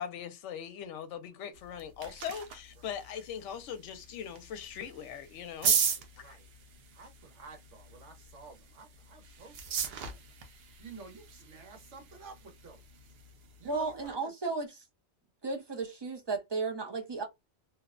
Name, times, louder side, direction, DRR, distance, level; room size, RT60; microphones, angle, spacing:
voice 1, 0.0-5.8 6.2-6.4, left 8 dB, 80° left, 0.9 m, -40 dB
sound 1, 1.5-14.1, right 7 dB, 65° right, 0.8 m, -38 dB
voice 2, 5.7-6.5 6.9-10.2 10.8-13.1 13.6-14.3, right 4 dB, 85° right, 1.2 m, -51 dB
voice 3, 13.6-14.7 15.4-17.2, right 3 dB, 30° right, 0.5 m, -34 dB
2.7 x 2.1 x 2.4 m
omnidirectional pair, 1.2 m